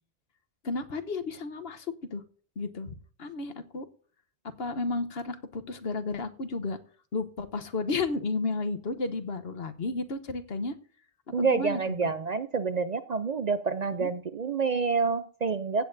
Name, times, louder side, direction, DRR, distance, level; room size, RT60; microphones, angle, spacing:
voice 1, 0.6-2.2 2.6-2.9 3.2-3.8 4.6-6.8 7.1-10.8 11.4-11.8 14.0-14.1, left 3 dB, 65° left, 10 dB, 1.2 m, -32 dB
voice 2, 11.3-15.9, right 4 dB, 50° right, 11 dB, 0.5 m, -28 dB
16.0 x 8.7 x 2.6 m, 0.43 s
omnidirectional pair, 1.1 m